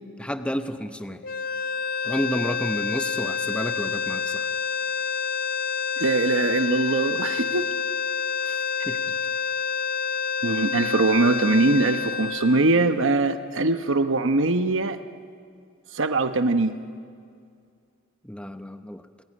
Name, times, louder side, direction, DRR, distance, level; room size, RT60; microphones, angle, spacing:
voice 1, 0.2-1.2 2.0-4.5 8.4-9.2 18.2-19.0, equal, 5° left, 8 dB, 0.8 m, -31 dB
sound 1, 1.2-13.5, left 6 dB, 45° left, 0.7 m, -28 dB
voice 2, 6.0-7.7 10.4-15.0 15.9-16.8, right 2 dB, 65° right, 8 dB, 1.0 m, -22 dB
29.0 x 21.0 x 9.7 m, 2.2 s
head